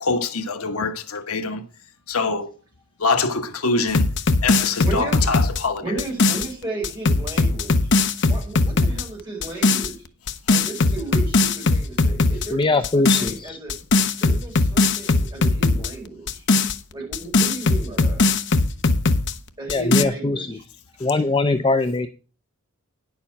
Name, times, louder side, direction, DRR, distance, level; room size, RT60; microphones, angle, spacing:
voice 1, 0.0-1.6 2.1-2.5 3.0-4.0 4.4-6.0, left 4 dB, 85° left, 1.1 m, -24 dB
sound 1, 3.9-6.5 6.8-9.0 9.4-9.9 10.3-12.5 12.8-13.3 13.7-15.9 16.3-19.3 19.7-20.0, left 3 dB, 55° left, 0.7 m, -19 dB
voice 2, 4.8-5.4 5.8-7.9 8.2-10.0 10.5-13.7 14.2-16.5 16.9-18.2 19.6-20.6, right 3 dB, 20° right, 5.2 m, -34 dB
voice 3, 12.5-13.6 19.7-20.6 21.0-22.1, left 3 dB, 20° left, 0.5 m, -21 dB
10.0 x 7.0 x 5.8 m
head